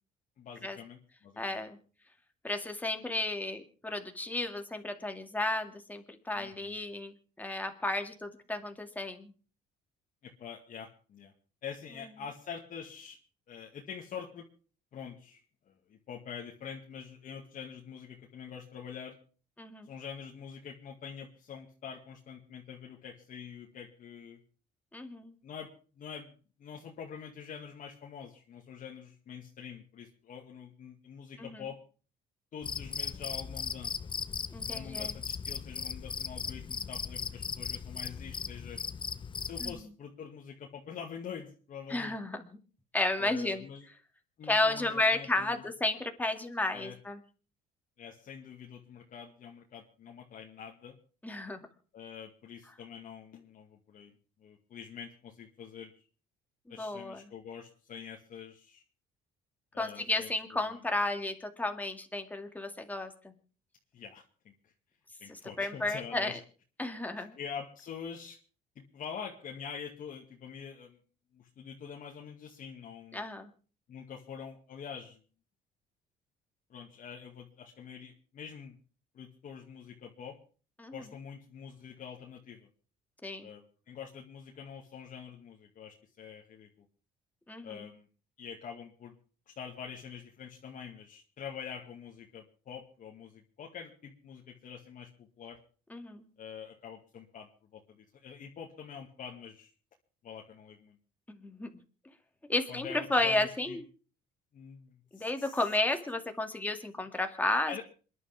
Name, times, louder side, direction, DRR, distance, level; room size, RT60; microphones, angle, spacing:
voice 1, 0.4-1.7 6.3-6.8 10.2-11.3 11.6-13.2 13.5-14.5 14.9-15.4 15.7-19.2 19.8-24.4 25.4-26.3 26.6-31.8 32.5-34.1 34.7-38.8 39.4-42.2 43.2-43.9 44.4-45.6 46.7-47.0 48.0-51.0 51.9-54.1 54.4-55.9 56.7-58.8 59.7-60.3 60.7-60.8 63.9-64.5 65.2-66.4 67.2-68.4 68.8-71.0 71.3-73.2 73.9-75.2 76.7-78.8 79.1-80.4 80.9-82.7 83.4-86.9 87.6-88.1 88.4-89.1 89.6-95.6 96.4-99.7 100.2-101.0 102.7-103.8 104.5-105.6 107.7-107.8, left 7 dB, 50° left, 0 dB, 2.1 m, -45 dB
voice 2, 1.4-1.8 2.4-9.3 19.6-19.9 24.9-25.4 31.4-31.6 34.5-35.1 39.6-39.9 41.9-42.6 42.9-43.6 44.5-47.2 51.2-51.7 56.7-57.2 59.8-63.3 65.6-66.4 66.8-67.3 73.1-73.5 80.8-80.9 83.2-83.5 87.5-87.9 95.9-96.3 101.3-101.7 102.5-103.8 105.1-107.8, left 2 dB, 10° left, 5 dB, 2.3 m, -33 dB
Cricket, 32.6-39.8, left 6 dB, 30° left, 0.8 m, -38 dB
27.5 x 11.0 x 3.5 m, 0.39 s
cardioid pair, 110°, 17 cm